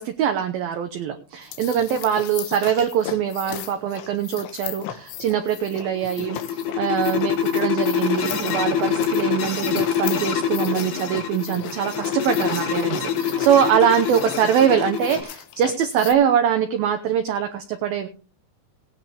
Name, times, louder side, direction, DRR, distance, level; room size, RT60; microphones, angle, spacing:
voice 1, 0.0-18.1, right 9 dB, 75° right, 6 dB, 2.3 m, -23 dB
sound 1, 1.4-16.1, left 11 dB, 80° left, 3.6 m, -37 dB
sound 2, 5.8-15.2, left 8 dB, 60° left, 5.4 m, -25 dB
18.0 x 10.5 x 3.5 m, 0.37 s
omnidirectional pair, 5.5 m